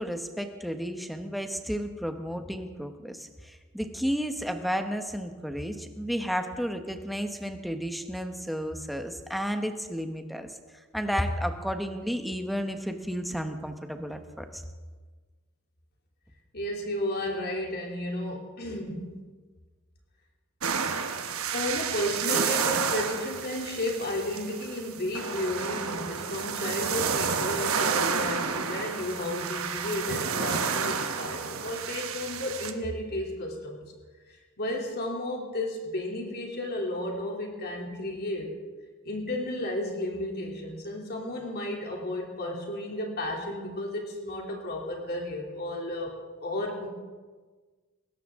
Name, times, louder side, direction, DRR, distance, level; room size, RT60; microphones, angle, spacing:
voice 1, 0.0-10.6 10.9-14.6, equal, ahead, 5 dB, 1.1 m, -32 dB
voice 2, 16.5-19.1 21.5-33.8 34.3-38.5 39.0-46.2 46.4-46.9, left 1 dB, 50° left, 0 dB, 3.0 m, -33 dB
sound 1, 20.6-32.7, right 6 dB, 75° right, 1.2 m, -30 dB
20.5 x 17.5 x 3.7 m, 1.4 s
head